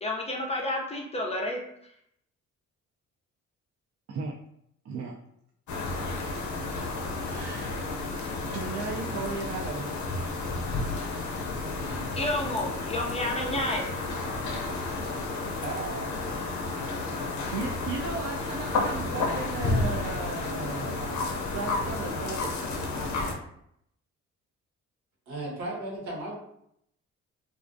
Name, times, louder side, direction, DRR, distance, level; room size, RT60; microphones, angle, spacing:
voice 1, 0.0-1.6 12.2-13.9, left 1 dB, 20° left, 0 dB, 0.4 m, -30 dB
voice 2, 4.9-5.2 7.1-7.8 8.4-9.9 15.6-16.1 17.5-21.3 21.5-22.6, right 4 dB, 50° right, -1 dB, 0.4 m, -36 dB
sound 1, 5.7-23.4, left 3 dB, 70° left, 0.6 m, -31 dB
voice 3, 25.3-26.4, right 1 dB, 80° right, -3 dB, 1.0 m, -35 dB
2.4 x 2.1 x 2.5 m, 0.73 s
cardioid pair, 90°, 30 cm